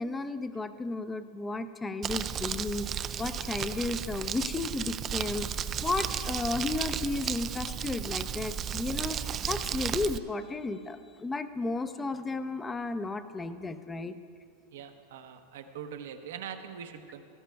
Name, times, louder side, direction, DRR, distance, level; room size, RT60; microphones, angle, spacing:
voice 1, 0.0-2.9 3.2-5.5 5.8-14.1, left 3 dB, 15° left, 10 dB, 0.6 m, -33 dB
Crumpling crinkling, 2.0-10.2, right 8 dB, 30° right, 0.3 m, -34 dB
voice 2, 14.7-17.2, right 8 dB, 75° right, 7 dB, 0.9 m, -42 dB
16.5 x 13.5 x 2.3 m, 2.4 s
hypercardioid pair, 115°, 0 cm